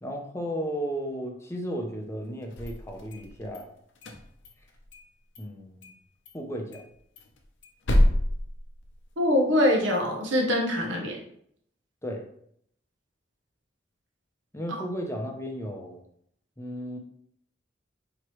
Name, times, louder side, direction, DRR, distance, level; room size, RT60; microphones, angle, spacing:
voice 1, 0.0-3.7 5.4-5.9 6.3-6.8 12.0-12.3 14.5-16.0 16.6-17.0, equal, 15° left, 2 dB, 0.6 m, -34 dB
sound 1, 2.4-3.6 3.9-5.1 5.3-5.4 5.8-6.0 6.2-6.3 6.7-9.3, left 1 dB, 80° left, 0.7 m, -28 dB
voice 2, 9.2-11.2, left 1 dB, 80° right, 0 dB, 0.8 m, -23 dB
4.6 x 2.9 x 3.0 m, 0.69 s
head